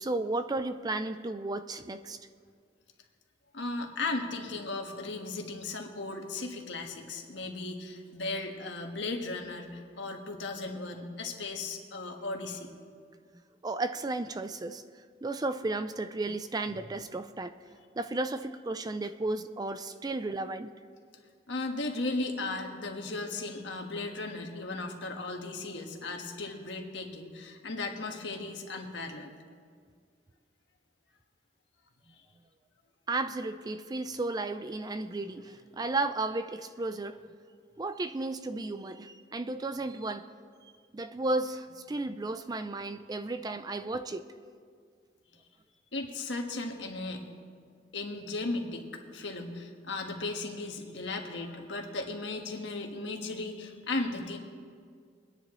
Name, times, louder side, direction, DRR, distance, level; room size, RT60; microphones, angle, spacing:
voice 1, 0.0-2.2 13.6-14.8 15.2-17.5 18.0-20.7 33.1-37.2 37.8-40.3 40.9-44.3, right 2 dB, 20° right, 10 dB, 0.4 m, -33 dB
voice 2, 3.5-12.7 21.5-29.3 45.9-47.3 47.9-54.4, left 2 dB, 85° left, 2 dB, 1.5 m, -36 dB
24.0 x 10.0 x 3.1 m, 2.1 s
head